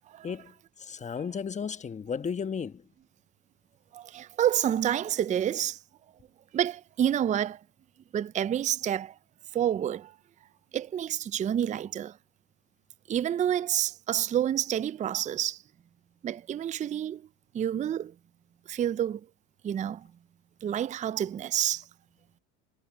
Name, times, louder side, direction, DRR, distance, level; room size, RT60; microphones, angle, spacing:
voice 1, 0.2-2.8, left 6 dB, 20° left, 1.3 m, -34 dB
voice 2, 3.9-5.8 6.5-7.6 8.1-9.1 9.5-10.1 10.7-12.2 13.1-15.6 16.2-17.2 17.5-18.1 18.7-19.2 19.6-20.1 20.6-21.8, right 10 dB, 25° right, 0.5 m, -28 dB
supercardioid pair, 100°, 32 cm